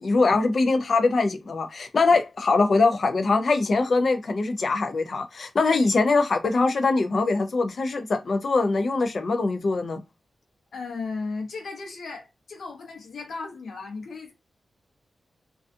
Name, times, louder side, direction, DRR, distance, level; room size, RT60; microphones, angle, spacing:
voice 1, 0.0-10.0, left 3 dB, 50° left, 0.4 m, -22 dB
voice 2, 10.7-14.3, left 4 dB, 80° left, 0.7 m, -35 dB
2.4 x 2.3 x 2.5 m
wide cardioid pair, 150°, 0 cm